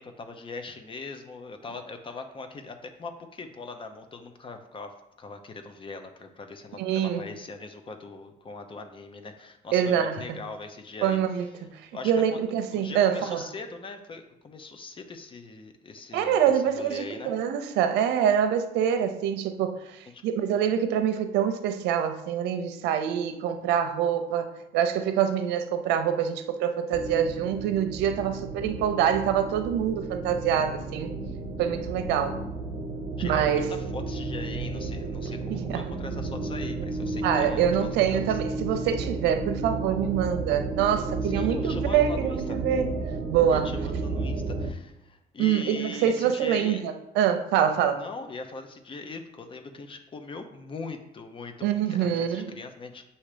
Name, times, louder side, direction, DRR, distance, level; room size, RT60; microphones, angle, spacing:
voice 1, 0.0-12.4 12.7-17.3 20.1-20.2 33.2-38.4 41.2-42.6 43.5-46.8 48.0-53.0, left 3 dB, 30° left, 0.8 m, -41 dB
voice 2, 6.8-7.2 9.7-10.4 11.0-13.4 16.1-24.5 24.7-31.1 31.6-32.3 33.2-33.7 35.5-35.8 37.2-42.9 43.3-43.7 45.4-48.0 51.6-52.5, right 9 dB, 90° right, 0.6 m, -25 dB
sound 1, 26.9-44.7, right 3 dB, 50° right, 1.0 m, -33 dB
7.3 x 2.8 x 5.0 m
cardioid pair, 110°, 17 cm